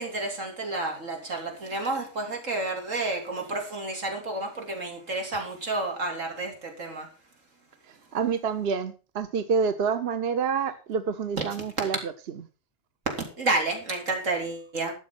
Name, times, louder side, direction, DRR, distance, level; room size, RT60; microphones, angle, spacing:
voice 1, 0.0-7.1 13.1-14.9, right 2 dB, 90° right, 2 dB, 3.6 m, -30 dB
voice 2, 8.1-12.1, right 6 dB, 55° right, 11 dB, 1.1 m, -27 dB
12.0 x 7.3 x 6.0 m, 0.35 s
omnidirectional pair, 1.3 m